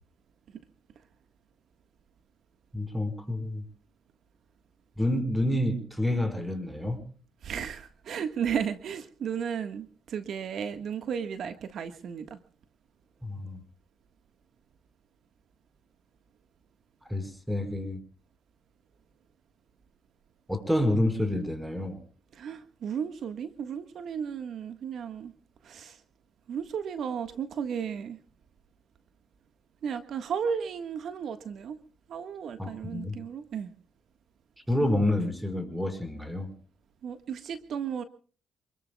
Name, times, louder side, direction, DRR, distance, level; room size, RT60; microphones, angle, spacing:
voice 1, 2.7-3.6 5.0-7.0 13.2-13.6 17.1-18.0 20.5-22.0 32.6-33.2 34.7-36.5, left 1 dB, 5° right, 9 dB, 4.9 m, -28 dB
voice 2, 7.4-12.4 22.3-25.3 25.6-26.0 26.5-28.2 29.8-31.8 32.1-33.7 37.0-38.0, right 7 dB, 65° right, 9 dB, 1.5 m, -34 dB
28.0 x 21.5 x 2.3 m, 0.40 s
cardioid pair, 90°, 0 cm